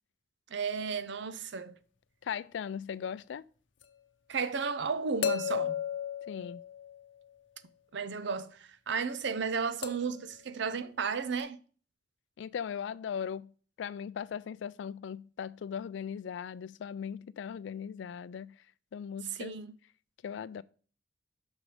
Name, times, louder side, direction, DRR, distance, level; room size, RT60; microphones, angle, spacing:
voice 1, 0.5-1.7 4.3-5.8 7.9-11.6 19.3-19.7, right 5 dB, 70° right, 0.6 m, -33 dB
voice 2, 2.2-3.4 6.3-6.6 12.4-13.5 13.8-18.6 18.9-19.5 20.2-20.6, left 7 dB, 70° left, 0.3 m, -38 dB
sound 1, 3.8-3.9 5.2-7.3 9.8-10.3 11.4-11.5, left 9 dB, 90° left, 0.7 m, -34 dB
6.1 x 5.4 x 4.9 m
head